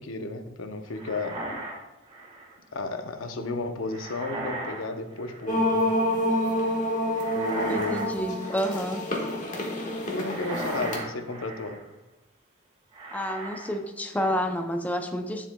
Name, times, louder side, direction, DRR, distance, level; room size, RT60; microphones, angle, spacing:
voice 1, 0.0-1.4 2.7-5.9 7.3-8.2 10.1-11.8, left 3 dB, 80° left, 7 dB, 0.7 m, -33 dB
sound 1, 0.9-2.5 3.9-4.9 5.1-5.7 7.1-8.1 8.4-8.9 10.1-11.8 12.9-13.8 14.1-14.5, right 2 dB, 30° right, 1.4 m, -37 dB
sound 2, 5.5-11.0, left 1 dB, 40° left, 1.4 m, -28 dB
voice 2, 7.7-9.0 13.1-15.5, equal, 10° left, 5 dB, 0.4 m, -29 dB
10.0 x 7.3 x 2.2 m, 1.0 s
head